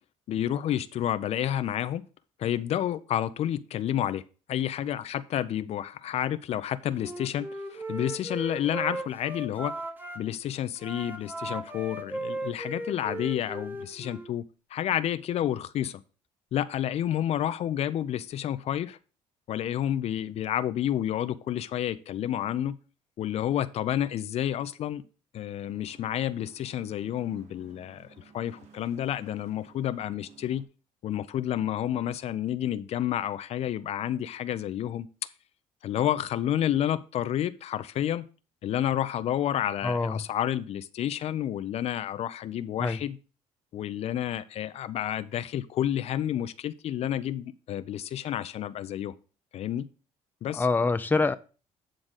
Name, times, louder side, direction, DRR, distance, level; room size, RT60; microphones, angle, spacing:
voice 1, 0.3-2.0 2.4-4.2 4.5-9.8 10.2-14.4 14.7-16.0 16.5-19.0 19.5-22.8 23.2-25.0 25.3-30.6 31.0-35.1 35.8-38.3 38.6-43.2 43.7-49.1 49.5-49.9 50.4-50.7, left 11 dB, 60° left, 0.6 m, -30 dB
Wind instrument woodwind instrument, 6.9-10.2 10.8-14.3, right 1 dB, 15° right, 1.4 m, -37 dB
sound 1, 25.6-30.6, right 6 dB, 65° right, 1.6 m, -56 dB
voice 2, 39.8-40.2 42.8-43.0 50.5-51.4, left 3 dB, 15° left, 0.6 m, -25 dB
8.9 x 3.8 x 6.3 m
cardioid pair, 90°, 12 cm